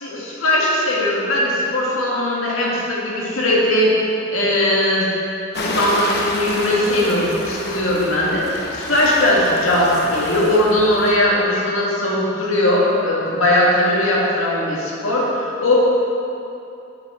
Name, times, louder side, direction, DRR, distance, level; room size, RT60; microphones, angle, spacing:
voice 1, 0.0-4.0 4.3-5.1 5.5-15.8, left 1 dB, 80° left, -5 dB, 1.8 m, -19 dB
sound 1, 5.5-11.2, left 1 dB, 55° left, 0.9 m, -29 dB
7.3 x 7.2 x 4.3 m, 2.7 s
head